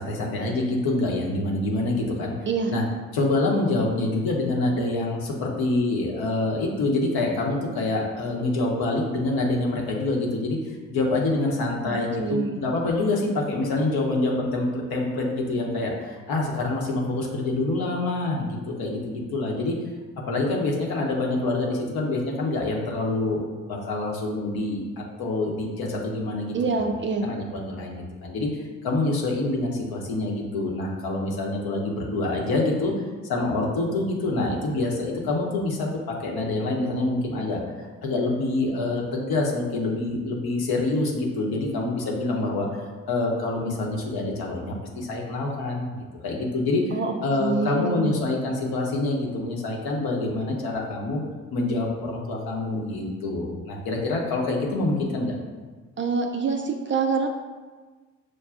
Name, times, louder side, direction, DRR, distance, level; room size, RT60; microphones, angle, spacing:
voice 1, 0.0-2.3 2.7-2.8 3.1-19.7 20.3-23.4 23.7-26.8 27.2-32.9 33.3-37.6 38.0-42.7 43.1-47.0 47.2-51.2 51.5-55.4, left 2 dB, 60° left, -1 dB, 0.9 m, -26 dB
voice 2, 11.8-12.6 26.5-27.3 46.9-48.1 56.0-57.3, right 4 dB, 30° right, 3 dB, 0.4 m, -26 dB
6.2 x 2.3 x 2.4 m, 1.3 s
hypercardioid pair, 45°, 41 cm